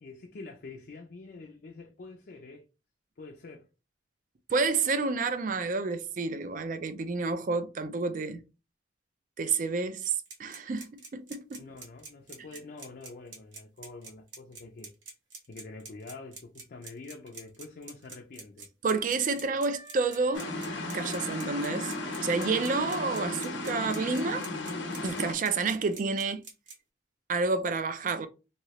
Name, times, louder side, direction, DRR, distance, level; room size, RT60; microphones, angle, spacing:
voice 1, 0.0-2.6 3.2-3.7 11.6-14.9 15.5-18.7, left 3 dB, 50° left, 0.4 m, -46 dB
voice 2, 4.5-8.4 9.4-10.1 10.4-11.6 18.8-20.5 20.9-21.9 22.2-24.5 25.0-26.4 27.3-28.3, right 4 dB, 45° right, 0.4 m, -29 dB
sound 1, 10.0-26.7, right 4 dB, 80° right, 0.9 m, -46 dB
Wind instrument woodwind instrument, 19.7-23.6, right 2 dB, 60° right, 1.0 m, -49 dB
sound 2, 20.3-25.3, left 2 dB, 85° left, 0.8 m, -35 dB
3.0 x 2.7 x 2.9 m
head